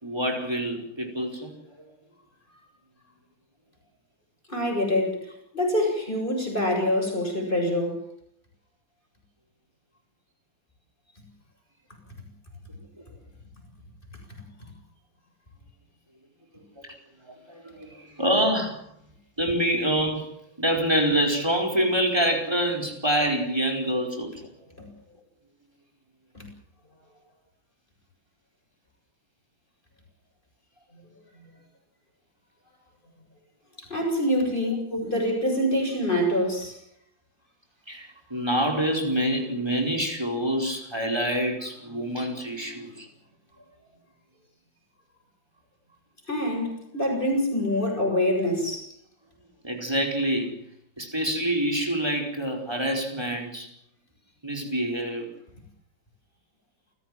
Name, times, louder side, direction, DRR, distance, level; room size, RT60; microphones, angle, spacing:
voice 1, 0.0-1.5 16.8-17.0 17.3-17.9 18.2-18.8 19.4-24.3 34.9-35.1 37.9-43.1 49.6-50.6 51.0-53.7 54.4-55.3, right 1 dB, 10° right, 4.9 m, -26 dB
voice 2, 4.5-8.0 24.8-24.9 26.3-26.5 33.8-36.8 46.3-48.9, left 1 dB, 25° left, 8.1 m, -25 dB
28.5 x 16.0 x 7.6 m
omnidirectional pair, 2.1 m